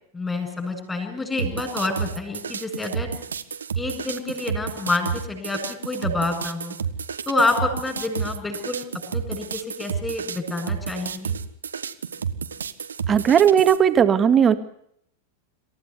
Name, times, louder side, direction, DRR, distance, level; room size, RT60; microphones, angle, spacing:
voice 1, 0.1-3.1 3.8-6.7 7.3-8.9 9.1-11.4, left 2 dB, 10° left, 5 dB, 7.6 m, -28 dB
sound 1, 1.4-13.8, right 6 dB, 70° right, 1.4 m, -31 dB
voice 2, 13.1-14.5, right 8 dB, 25° right, 10 dB, 2.0 m, -17 dB
27.0 x 15.5 x 9.7 m, 0.72 s
figure-of-eight pair, 90°, 0 cm